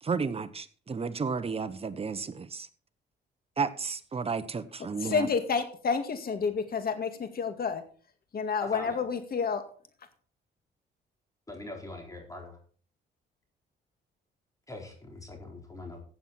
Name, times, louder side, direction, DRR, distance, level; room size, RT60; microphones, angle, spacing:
voice 1, 0.0-2.7 3.6-5.3, right 5 dB, 30° right, 1.1 m, -32 dB
voice 2, 5.0-7.8 8.3-9.6, left 5 dB, 50° left, 2.2 m, -29 dB
voice 3, 8.6-9.0 11.5-12.6 14.7-16.0, left 1 dB, 15° left, 4.3 m, -42 dB
16.0 x 7.5 x 4.4 m
cardioid pair, 90°, 20 cm